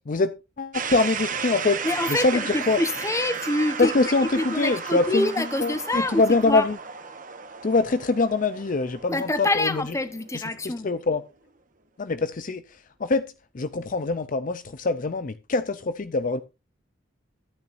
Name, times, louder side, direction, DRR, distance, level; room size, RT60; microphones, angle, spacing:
voice 1, 0.1-1.8 2.1-2.8 3.8-6.7 7.6-9.8 10.3-11.2 12.0-12.6 13.0-13.2 13.5-16.4, left 3 dB, 45° left, 0.6 m, -24 dB
sound 1, 0.7-10.6, right 6 dB, 45° right, 1.3 m, -34 dB
voice 2, 1.8-3.9 4.4-6.7 9.1-10.9, left 2 dB, 15° left, 1.0 m, -26 dB
14.0 x 9.2 x 2.6 m
head